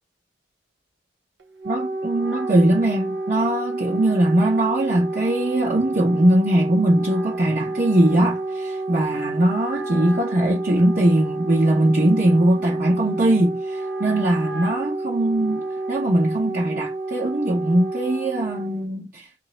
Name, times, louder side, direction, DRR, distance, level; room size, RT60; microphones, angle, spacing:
Wind instrument woodwind instrument, 1.4-18.9, right 2 dB, 85° right, 0.8 m, -29 dB
voice 1, 1.6-19.3, right 1 dB, 50° right, 1.0 m, -21 dB
2.9 x 2.8 x 4.3 m
head